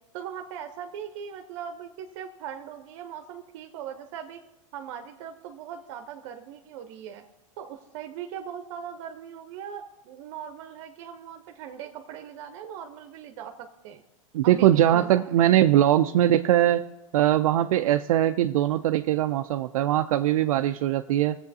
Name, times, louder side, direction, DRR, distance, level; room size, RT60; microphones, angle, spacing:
voice 1, 0.1-4.4 4.7-7.2 7.6-14.0 14.4-15.4, right 8 dB, 60° right, 5 dB, 0.8 m, -40 dB
voice 2, 14.3-16.8 17.1-21.4, right 12 dB, 80° right, 8 dB, 0.4 m, -21 dB
16.5 x 7.6 x 2.7 m, 1.1 s
hypercardioid pair, 120°, 17 cm